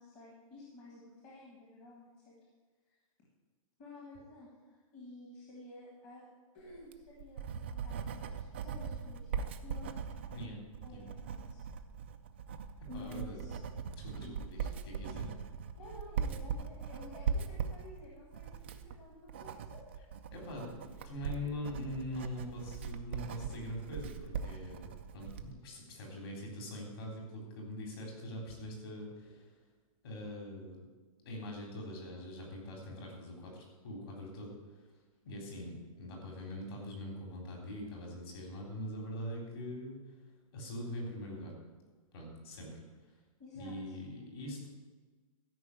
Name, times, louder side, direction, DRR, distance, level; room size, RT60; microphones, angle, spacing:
voice 1, 0.0-2.4 2.9-3.0 3.8-6.3 6.5-9.9 10.8-11.6 12.9-13.6 14.2-14.4 15.8-19.8 21.2-21.6 36.6-36.7 43.4-43.7, left 1 dB, 20° left, -4 dB, 1.5 m, -52 dB
Writing, 6.7-25.5, right 6 dB, 20° right, 0.3 m, -40 dB
voice 2, 12.9-13.4 14.0-15.3 20.3-29.5 30.0-30.8 31.2-34.9 35.2-40.0 40.5-41.5 42.1-42.8 43.5-44.7, left 1 dB, 40° left, -1 dB, 3.5 m, -43 dB
13.0 x 5.5 x 8.4 m, 1.4 s
hypercardioid pair, 180°, 18 cm